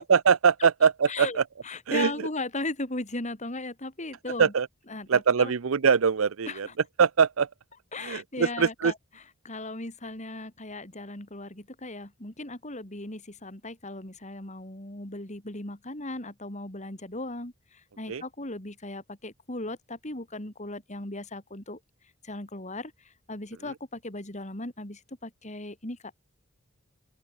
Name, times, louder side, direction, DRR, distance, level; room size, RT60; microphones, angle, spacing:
voice 1, 0.0-1.3 1.9-2.1 4.4-4.7 5.1-6.7 7.0-7.5 8.0-8.9 18.1-18.2, right 6 dB, 75° right, 0.6 m, -22 dB
voice 2, 1.1-4.5 4.8-5.5 6.5-6.7 7.9-17.5 18.0-21.8 22.2-22.9 23.3-26.0, left 2 dB, 35° left, 3.8 m, -37 dB
open air
head